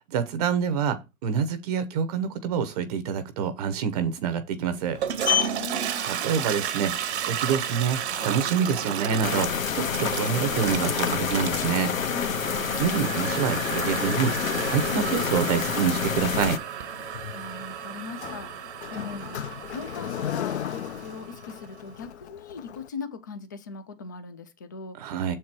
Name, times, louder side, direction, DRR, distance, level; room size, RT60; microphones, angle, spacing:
voice 1, 0.1-5.0 6.1-12.0 12.8-14.4 14.7-16.6 25.0-25.4, right 7 dB, 30° right, 0.8 m, -27 dB
Sliding door, 4.6-22.9, left 10 dB, 55° left, 0.7 m, -36 dB
Toilet flush, 4.8-21.6, right 9 dB, 55° right, 1.0 m, -33 dB
voice 2, 5.6-6.0 12.1-12.8 17.3-25.3, left 4 dB, 15° left, 0.4 m, -40 dB
sound 1, 9.2-16.6, left 7 dB, 75° left, 1.6 m, -28 dB
7.1 x 4.5 x 4.5 m
hypercardioid pair, 140°, 40 cm